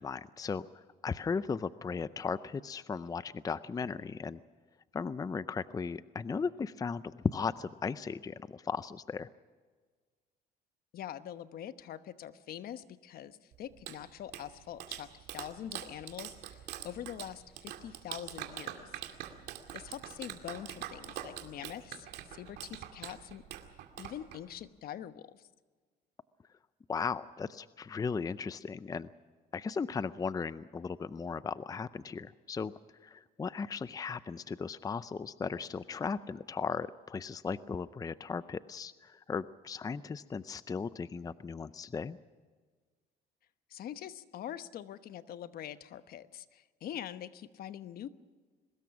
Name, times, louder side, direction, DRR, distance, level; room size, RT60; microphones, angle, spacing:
voice 1, 0.0-4.4 4.9-9.3 26.9-29.1 29.5-32.7 33.0-42.2, left 5 dB, 20° left, 15 dB, 0.5 m, -36 dB
voice 2, 10.9-19.0 19.7-23.4 24.0-25.5 43.7-48.1, left 10 dB, 65° left, 12 dB, 1.1 m, -44 dB
Clapping, 13.5-24.7, right 11 dB, 75° right, 2.3 m, -44 dB
23.0 x 20.5 x 6.0 m, 1.5 s
cardioid pair, 110°, 17 cm